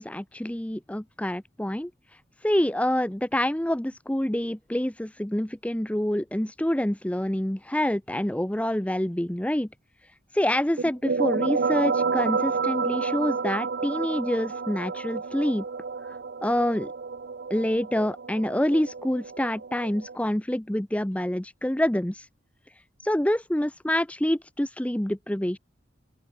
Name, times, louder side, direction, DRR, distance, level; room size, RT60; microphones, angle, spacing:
voice 1, 0.0-1.9 2.4-9.7 10.3-15.6 16.0-16.9 17.5-22.3 23.0-25.6, left 1 dB, 5° left, 0.7 m, -27 dB
sound 1, 10.8-20.2, right 5 dB, 60° right, 0.6 m, -30 dB
open air
head